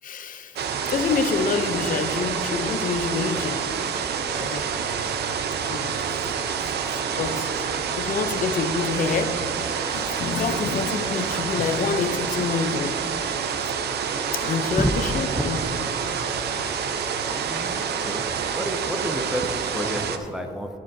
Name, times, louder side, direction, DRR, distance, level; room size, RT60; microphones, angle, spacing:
voice 1, 0.0-0.6 0.9-3.6 4.4-4.7 5.7-5.9 7.2-7.5 8.0-9.4 9.9-13.0 14.3-15.6, left 5 dB, 55° left, 9 dB, 0.6 m, -27 dB
sound 1, 0.6-20.2, right 6 dB, 80° right, 0.7 m, -27 dB
voice 2, 17.2-18.3 18.5-20.7, equal, 5° right, 4 dB, 0.6 m, -30 dB
11.5 x 10.5 x 2.7 m, 2.8 s
cardioid pair, 135°, 17 cm